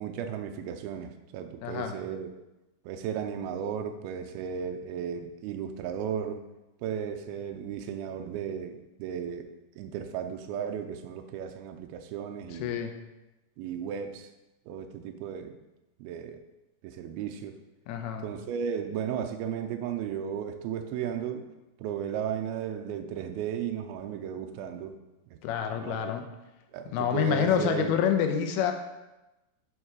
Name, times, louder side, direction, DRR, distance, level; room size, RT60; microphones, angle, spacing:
voice 1, 0.0-2.3 2.9-6.4 6.8-12.7 13.6-14.3 14.7-15.6 16.0-16.4 16.8-17.6 18.2-21.4 21.8-25.0 25.3-25.4 25.7-26.1 26.7-27.9, right 8 dB, 85° right, 6 dB, 2.3 m, -35 dB
voice 2, 1.6-1.9 12.6-12.9 17.9-18.3 25.4-26.2 26.9-28.7, left 8 dB, 75° left, 5 dB, 2.5 m, -27 dB
9.0 x 5.8 x 4.7 m, 1.0 s
omnidirectional pair, 5.0 m